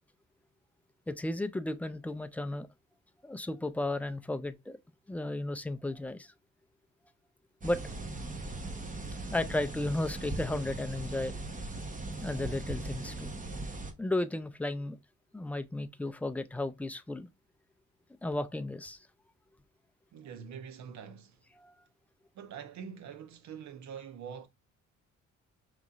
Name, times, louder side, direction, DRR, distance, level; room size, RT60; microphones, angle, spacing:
voice 1, 1.1-2.7 3.2-4.8 5.1-6.3 7.6-7.8 9.3-11.4 12.2-13.3 14.0-15.0 15.3-17.3 18.2-19.0 21.6-21.7, left 2 dB, 5° left, 0.4 m, -34 dB
sound 1, 7.6-13.9, right 2 dB, 25° right, 1.0 m, -39 dB
voice 2, 20.1-21.4 22.3-24.5, right 7 dB, 70° right, 0.8 m, -45 dB
5.1 x 3.0 x 2.4 m
cardioid pair, 90°, 30 cm